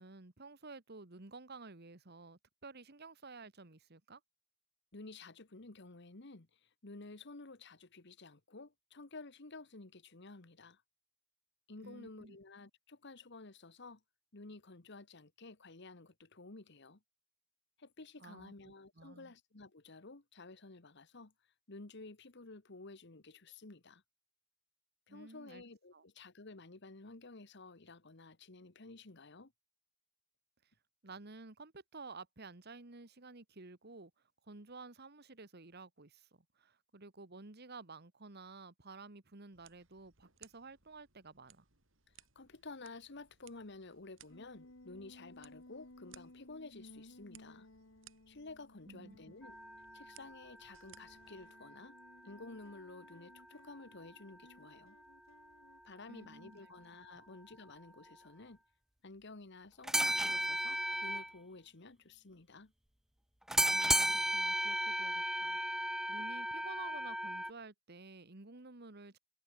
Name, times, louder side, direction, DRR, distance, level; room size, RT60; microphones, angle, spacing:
voice 1, 0.0-4.2 11.8-12.4 18.2-18.5 19.0-19.3 25.1-25.6 25.9-26.0 31.0-34.1 34.4-41.7 48.9-49.4 56.1-56.7 57.1-57.3 63.7-69.2, right 3 dB, 55° right, 1.7 m, -52 dB
voice 2, 4.9-10.8 11.7-14.0 14.3-17.0 17.8-21.3 21.7-24.0 25.1-29.5 42.3-47.7 48.3-49.6 49.9-51.9 52.2-55.0 55.8-58.6 59.0-62.7, left 3 dB, 60° left, 1.5 m, -52 dB
sound 1, 39.5-51.5, right 10 dB, 70° right, 6.4 m, -65 dB
sound 2, 44.3-50.3 50.9-55.8, left 1 dB, 85° left, 2.4 m, -59 dB
sound 3, 49.4-52.8 53.0-53.1 59.8-61.3 63.5-67.5, right 1 dB, ahead, 0.4 m, -35 dB
head